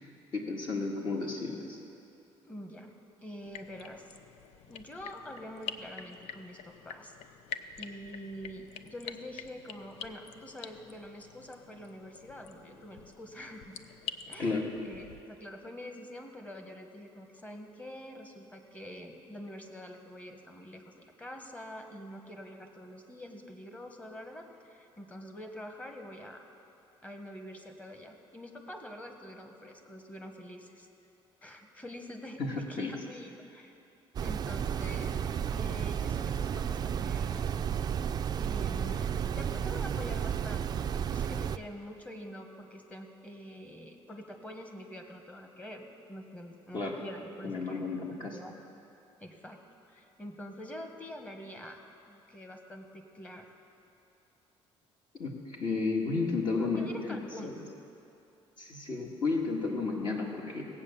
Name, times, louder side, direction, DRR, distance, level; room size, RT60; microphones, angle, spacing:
voice 1, 0.0-1.8 14.4-14.7 32.4-32.9 46.7-47.0 47.4-48.4 55.2-57.5 58.6-60.7, left 3 dB, 45° left, -1 dB, 1.8 m, -33 dB
voice 2, 2.4-2.9 3.2-4.1 4.7-7.4 7.8-13.8 14.3-26.5 27.0-30.9 31.4-33.7 34.2-35.2 35.5-37.5 38.4-47.9 48.3-48.6 49.2-51.8 52.1-53.5 56.6-57.5, equal, 15° left, 4 dB, 1.4 m, -46 dB
sound 1, 3.4-15.2, left 8 dB, 80° left, 0.6 m, -46 dB
sound 2, 34.2-41.6, right 8 dB, 40° right, 0.4 m, -32 dB
17.5 x 8.5 x 7.1 m, 2.7 s
cardioid pair, 125°, 11 cm